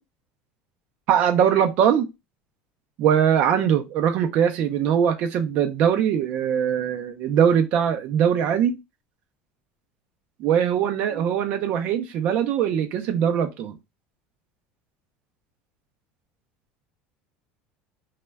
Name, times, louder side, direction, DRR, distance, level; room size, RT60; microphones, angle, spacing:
voice 1, 1.1-2.1 3.0-8.8 10.4-13.7, right 8 dB, 45° right, 0.4 m, -21 dB
2.1 x 2.1 x 3.3 m
cardioid pair, 175°, 4 cm